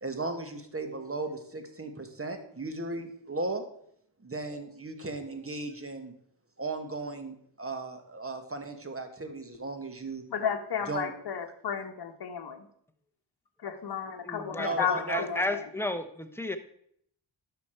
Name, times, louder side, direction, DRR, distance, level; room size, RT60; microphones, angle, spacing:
voice 1, 0.0-3.6 4.2-6.1 6.6-10.2 10.8-11.1 14.6-15.3, right 3 dB, 30° right, 7 dB, 1.5 m, -36 dB
voice 2, 10.3-12.6 13.6-15.4, left 7 dB, 55° left, 5 dB, 1.1 m, -33 dB
voice 3, 14.2-16.6, left 1 dB, 5° left, 8 dB, 0.9 m, -33 dB
11.0 x 5.9 x 4.5 m, 0.68 s
cardioid pair, 65°, 46 cm